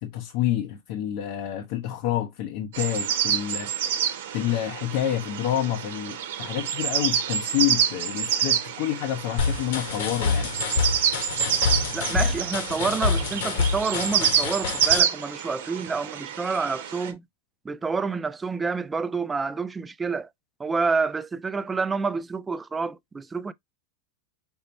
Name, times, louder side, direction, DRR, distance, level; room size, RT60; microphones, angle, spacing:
voice 1, 0.0-3.9 4.3-10.6, left 12 dB, 55° left, 0.7 m, -28 dB
sound 1, 2.7-17.1, right 9 dB, 80° right, 1.0 m, -27 dB
sound 2, 9.4-15.0, left 5 dB, 70° left, 1.3 m, -27 dB
voice 2, 11.9-17.2 17.6-20.3 20.6-23.5, right 4 dB, 15° right, 0.4 m, -28 dB
5.4 x 2.2 x 4.0 m
supercardioid pair, 140°, 0 cm